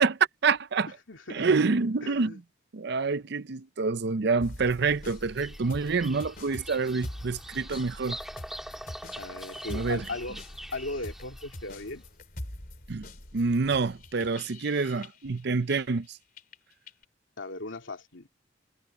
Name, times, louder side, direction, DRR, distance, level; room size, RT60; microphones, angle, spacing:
voice 1, 0.0-0.9 1.3-2.3 2.7-8.2 9.7-10.0 12.9-13.1 13.3-16.2, right 4 dB, 60° right, 0.6 m, -27 dB
voice 2, 1.1-1.5 2.0-2.4 9.2-10.4 10.7-12.0 17.4-18.3, left 2 dB, 85° left, 2.9 m, -37 dB
sound 1, 4.4-16.1 16.4-17.0, left 1 dB, 50° left, 3.1 m, -44 dB
Bird vocalization bird call bird song, 5.1-11.8, equal, ahead, 3.3 m, -44 dB
head